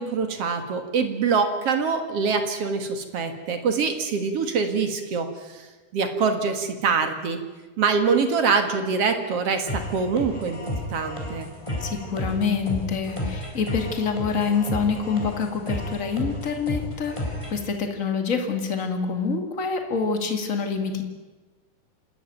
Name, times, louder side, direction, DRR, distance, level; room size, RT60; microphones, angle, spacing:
voice 1, 0.0-5.7 5.9-7.4 7.8-11.5, right 5 dB, 50° right, 7 dB, 2.3 m, -24 dB
sound 1, 9.7-17.6, left 1 dB, 10° left, 3.9 m, -32 dB
voice 2, 11.8-21.0, left 5 dB, 25° left, 5 dB, 2.0 m, -26 dB
27.5 x 13.0 x 9.2 m, 1.2 s
omnidirectional pair, 4.3 m